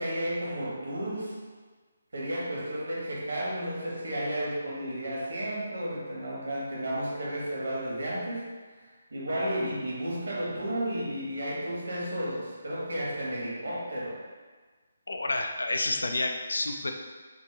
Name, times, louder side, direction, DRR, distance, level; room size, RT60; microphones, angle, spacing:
voice 1, 0.0-1.4 2.1-8.5 9.1-14.2, equal, 60° right, -5 dB, 1.1 m, -32 dB
voice 2, 15.1-16.9, left 2 dB, 65° left, 4 dB, 0.3 m, -29 dB
3.5 x 2.2 x 3.9 m, 1.4 s
figure-of-eight pair, 145°, 0 cm